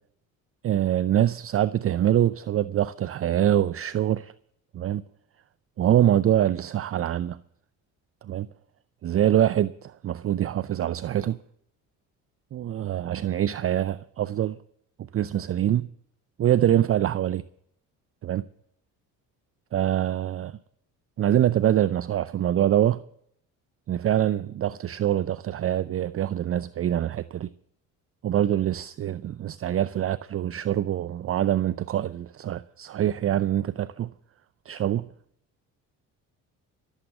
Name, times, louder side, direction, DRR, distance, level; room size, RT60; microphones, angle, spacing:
voice 1, 0.6-4.3 4.7-5.0 5.8-7.4 8.3-8.5 9.0-11.4 12.5-14.6 15.1-15.9 16.4-17.4 18.2-18.4 19.7-20.6 21.2-23.0 23.9-27.5 28.2-34.1 34.7-35.1, right 11 dB, 40° right, 0.5 m, -24 dB
14.5 x 8.2 x 8.7 m
supercardioid pair, 80°, 36 cm